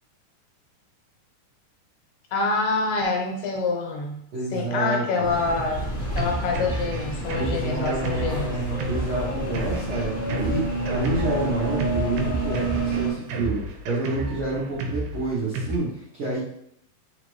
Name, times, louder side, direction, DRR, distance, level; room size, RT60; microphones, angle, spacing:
voice 1, 2.3-4.2 4.5-5.9 6.1-8.6, left 3 dB, 75° left, 1 dB, 2.2 m, -26 dB
voice 2, 4.3-5.0 7.3-16.4, right 2 dB, 65° right, -10 dB, 1.4 m, -29 dB
sound 1, 5.2-13.1, right 2 dB, 50° left, 0.7 m, -29 dB
Drum kit, 5.5-15.8, right 2 dB, 85° right, 2.2 m, -32 dB
5.0 x 2.5 x 3.0 m, 0.71 s
omnidirectional pair, 3.8 m